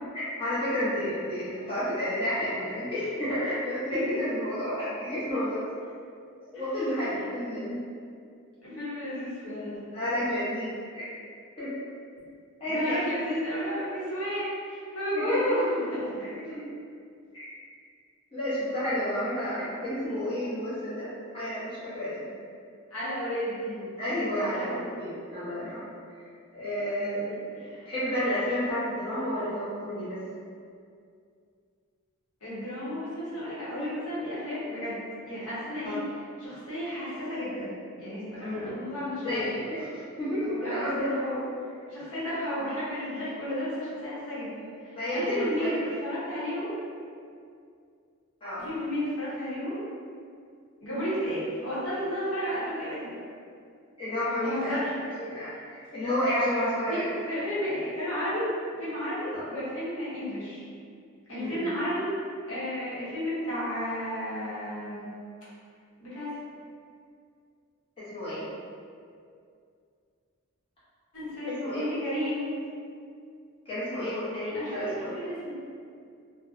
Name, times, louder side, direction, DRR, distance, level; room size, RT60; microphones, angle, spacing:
voice 1, 0.1-5.6 6.5-7.8 8.7-8.8 9.9-11.1 11.6-11.7 12.6-13.1 15.3-15.4 16.2-16.6 17.3-17.4 18.3-21.1 21.3-22.1 24.0-25.9 26.2-26.3 26.5-27.4 27.8-30.2 35.8-36.0 38.4-38.8 39.2-41.1 44.9-45.7 48.4-48.7 54.0-54.8 55.2-57.1 59.3-59.5 61.4-61.6 68.0-68.4 71.6-71.9 73.7-75.1, equal, 25° left, -12 dB, 0.7 m, -31 dB
voice 2, 8.6-9.8 12.7-16.2 22.9-23.9 24.4-24.8 26.7-27.9 32.4-35.0 35.2-36.0 36.4-39.5 40.4-40.8 41.1-41.4 41.9-45.8 46.0-46.8 48.6-49.8 50.8-53.1 54.4-54.9 56.9-58.5 58.8-60.6 61.3-62.1 62.5-65.1 66.0-66.3 71.1-72.5 74.5-75.6, equal, 70° left, -10 dB, 0.9 m, -32 dB
2.5 x 2.0 x 2.4 m, 2.3 s
head